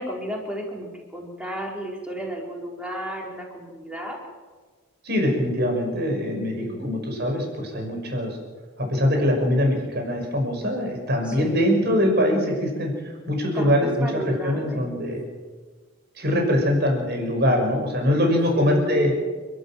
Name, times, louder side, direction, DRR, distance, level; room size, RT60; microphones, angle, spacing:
voice 1, 0.0-4.2 6.3-6.9 11.2-11.6 13.5-15.0 18.5-19.2, equal, 5° right, -1 dB, 4.5 m, -33 dB
voice 2, 5.0-8.4 8.8-12.9 13.3-13.9 14.1-15.2 16.1-19.1, equal, 55° right, 2 dB, 6.1 m, -23 dB
30.0 x 12.5 x 7.6 m, 1.4 s
head